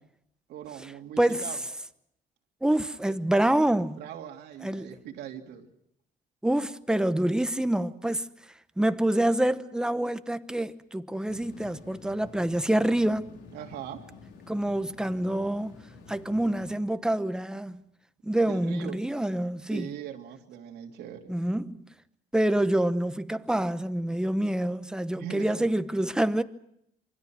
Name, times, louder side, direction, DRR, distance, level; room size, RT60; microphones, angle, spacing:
voice 1, 0.5-1.6 4.0-5.7 13.5-14.0 18.4-19.0 19.7-21.3 25.1-25.7, right 9 dB, 75° right, 2.8 m, -41 dB
voice 2, 2.6-4.0 4.6-5.0 6.4-8.3 8.8-13.3 14.5-15.8 16.1-17.8 18.2-19.9 21.3-21.8 22.3-26.4, right 1 dB, 5° right, 1.0 m, -26 dB
sound 1, 11.3-16.7, left 4 dB, 90° left, 3.6 m, -49 dB
27.5 x 24.5 x 6.0 m
cardioid pair, 110°, 17 cm